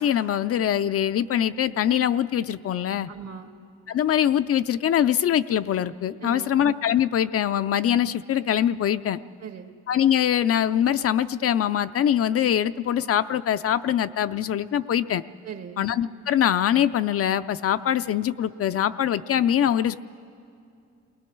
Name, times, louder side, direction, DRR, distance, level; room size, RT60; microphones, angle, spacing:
voice 1, 0.0-3.1 3.9-9.2 9.9-15.2 15.8-20.0, left 10 dB, 50° left, 12 dB, 0.5 m, -23 dB
voice 2, 3.1-3.5 6.2-6.6 9.4-9.7 15.4-15.9, right 6 dB, 60° right, 7 dB, 1.5 m, -39 dB
28.0 x 20.0 x 4.6 m, 2.4 s
cardioid pair, 90°, 30 cm